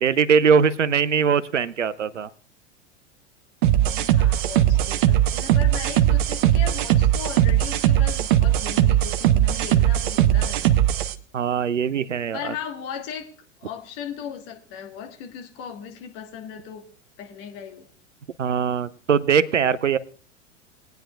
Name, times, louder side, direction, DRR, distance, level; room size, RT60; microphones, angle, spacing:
voice 1, 0.0-2.3 11.3-12.5 18.4-20.0, right 6 dB, 80° right, 17 dB, 0.6 m, -21 dB
sound 1, 3.6-11.1, right 12 dB, 45° right, 0.7 m, -19 dB
voice 2, 3.7-10.8 12.3-13.3 13.6-16.8 17.2-17.9, left 8 dB, 40° left, 4 dB, 1.6 m, -37 dB
22.5 x 9.2 x 2.4 m, 0.41 s
figure-of-eight pair, 90°, 37 cm